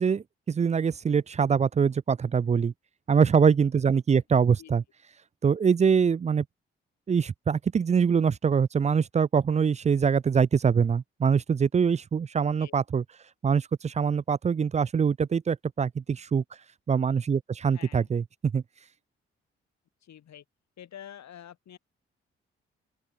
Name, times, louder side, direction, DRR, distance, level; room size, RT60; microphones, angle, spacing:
voice 1, 0.0-2.7 3.1-4.8 5.4-6.4 7.1-13.0 13.4-16.4 16.9-18.6, right 6 dB, 25° right, 0.4 m, -24 dB
voice 2, 4.4-4.7 12.6-12.8 17.7-18.1 20.0-20.4 20.8-21.8, left 10 dB, 65° left, 7.9 m, -47 dB
open air
hypercardioid pair, 40°, 30 cm